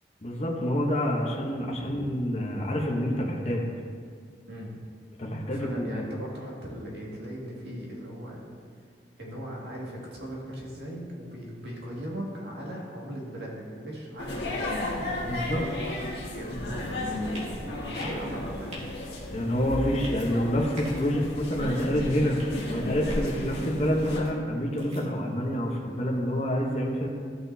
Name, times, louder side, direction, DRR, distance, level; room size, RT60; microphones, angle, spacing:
voice 1, 0.2-3.6 5.2-6.1 15.2-15.6 19.3-22.4 22.7-27.1, equal, 35° left, -1 dB, 0.9 m, -27 dB
voice 2, 4.5-4.8 5.5-8.4 9.2-14.7 15.4-17.4 17.9-18.7, equal, 75° right, -3 dB, 2.0 m, -39 dB
sound 1, 14.2-24.2, left 1 dB, 75° left, 1.7 m, -34 dB
sound 2, 17.3-17.5 18.0-18.2 18.7-18.8 19.9-20.3 20.8-21.0 21.5-21.9 22.3-22.6 23.1-23.3 24.0-24.3 24.8-25.0, equal, 35° right, 2.0 m, -45 dB
14.5 x 6.1 x 2.7 m, 2.1 s
head